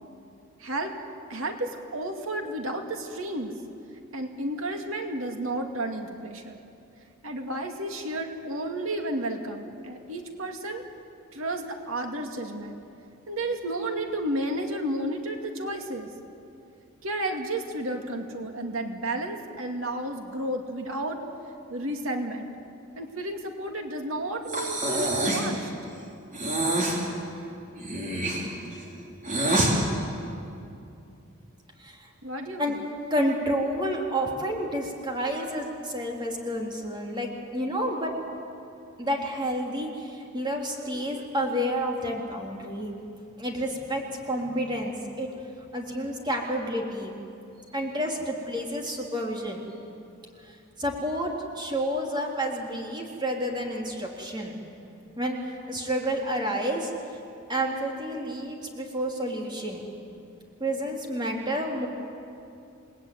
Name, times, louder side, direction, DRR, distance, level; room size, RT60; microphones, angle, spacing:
voice 1, 0.6-1.0 1.3-3.5 4.1-6.6 7.2-10.8 11.3-12.8 13.3-16.1 17.0-21.2 21.7-22.5 23.0-25.7 32.2-32.8, right 1 dB, 75° right, 3 dB, 2.4 m, -32 dB
Breathing, 24.5-25.5 26.3-27.0 27.8-29.7, right 1 dB, 35° right, 4.3 m, -26 dB
voice 2, 33.1-38.1 39.0-43.0 43.4-45.3 45.7-47.2 47.7-49.6 50.4-54.6 55.2-55.4 55.7-56.9 57.5-59.9 60.6-61.9, equal, 20° right, 0 dB, 3.5 m, -30 dB
28.5 x 19.5 x 9.4 m, 2.6 s
head